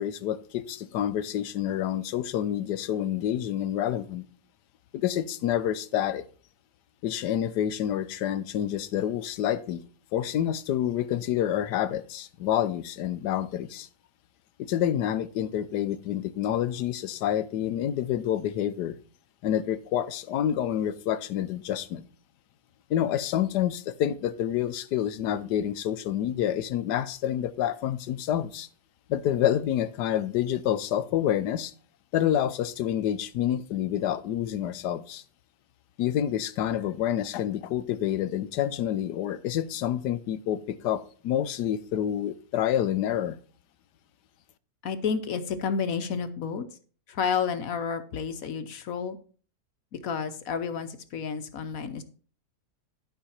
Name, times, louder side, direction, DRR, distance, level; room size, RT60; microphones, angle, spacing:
voice 1, 0.0-4.2 4.9-6.2 7.0-9.8 10.1-13.9 14.6-19.0 19.4-22.0 22.9-28.7 29.1-31.7 32.1-35.2 36.0-43.4, left 11 dB, 90° left, 1.3 m, -28 dB
voice 2, 44.8-46.6 47.1-49.2 49.9-52.0, left 6 dB, 60° left, 1.2 m, -30 dB
12.0 x 5.6 x 4.4 m
omnidirectional pair, 1.8 m